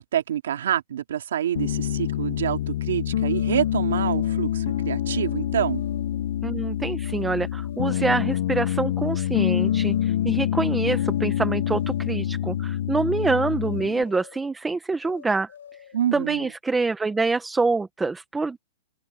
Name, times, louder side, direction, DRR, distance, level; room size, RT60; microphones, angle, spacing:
voice 1, 0.0-5.8 15.9-16.5, right 10 dB, 80° right, 2.5 m, -27 dB
Piano, 1.5-14.0, left 11 dB, 55° left, 0.7 m, -26 dB
sound 1, 3.3-4.4 5.1-5.3 5.6-6.2 7.0-7.3 7.6-8.2 9.0-9.3 9.6-10.2 11.0-11.3 11.6-12.2 13.1-13.4 13.6-14.5 15.0-16.0, left 9 dB, 90° left, 4.7 m, -48 dB
voice 2, 6.4-15.5 16.1-18.6, right 3 dB, 5° right, 0.9 m, -26 dB
open air
supercardioid pair, 170°, 0 cm